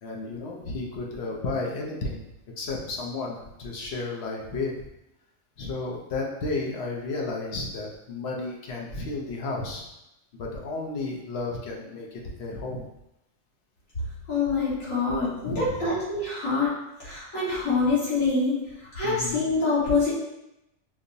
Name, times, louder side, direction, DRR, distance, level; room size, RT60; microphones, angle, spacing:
voice 1, 0.0-2.2 2.6-4.9 5.6-9.9 10.3-12.9 15.4-15.9 19.0-19.5, left 3 dB, 60° left, -1 dB, 0.8 m, -33 dB
voice 2, 14.3-18.6 18.9-20.1, left 3 dB, 80° left, -9 dB, 1.9 m, -25 dB
5.2 x 2.0 x 2.6 m, 0.88 s
omnidirectional pair, 1.4 m